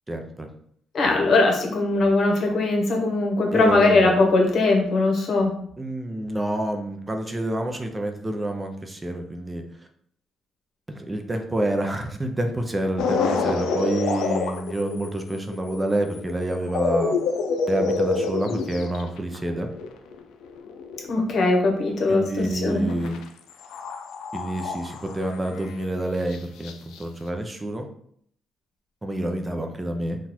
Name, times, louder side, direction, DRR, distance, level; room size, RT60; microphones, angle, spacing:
voice 1, 0.1-0.5 3.5-4.2 5.8-9.6 10.9-17.1 17.7-19.7 22.1-23.2 24.3-27.9 29.0-30.2, right 1 dB, 20° right, 4 dB, 0.5 m, -28 dB
voice 2, 0.9-5.5 21.1-22.9, left 2 dB, 55° left, 1 dB, 1.1 m, -20 dB
sound 1, 13.0-22.1 22.4-23.2 23.5-25.6 26.3-26.4 26.6-27.0, left 4 dB, 85° left, 0.4 m, -28 dB
4.0 x 2.4 x 4.2 m, 0.65 s
cardioid pair, 90°, 0 cm